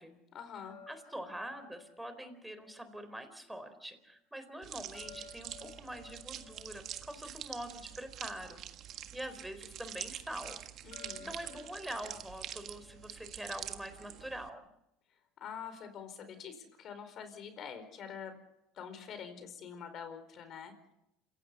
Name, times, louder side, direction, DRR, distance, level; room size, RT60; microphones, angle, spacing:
voice 1, 0.3-0.8 10.8-11.4 15.4-18.4 18.8-20.9, left 7 dB, 45° left, 10 dB, 4.7 m, -46 dB
sound 1, 0.6-3.7 4.9-8.5 10.9-14.0, left 6 dB, 65° left, 3.4 m, -57 dB
voice 2, 0.9-8.6 9.1-10.6 11.2-14.7, right 1 dB, 5° right, 10 dB, 4.0 m, -44 dB
sound 2, 4.6-14.5, right 11 dB, 50° right, 1.6 m, -46 dB
27.5 x 16.5 x 6.9 m, 0.84 s
supercardioid pair, 95°, 0 cm